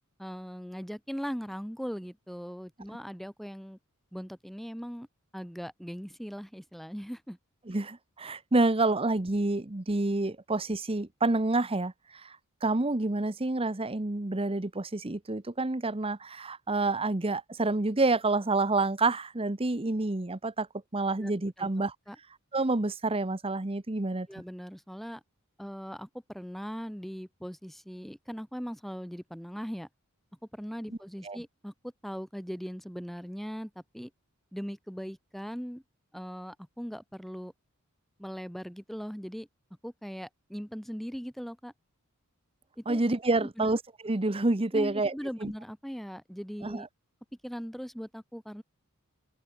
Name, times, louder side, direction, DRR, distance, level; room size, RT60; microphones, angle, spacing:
voice 1, 0.2-3.8 4.1-5.1 5.3-7.4 21.2-21.3 21.6-21.7 22.1-22.2 24.3-25.2 25.6-29.9 30.5-34.1 34.5-35.8 36.1-37.5 38.2-39.5 39.8-41.7 42.8-43.0 43.4-43.7 44.7-46.9 47.4-48.6, equal, ahead, 4.7 m, -39 dB
voice 2, 7.7-20.7 20.9-21.9 22.5-24.3 31.2-31.4 42.9-45.1 45.4-45.5 46.6-46.9, right 2 dB, 25° right, 1.0 m, -28 dB
head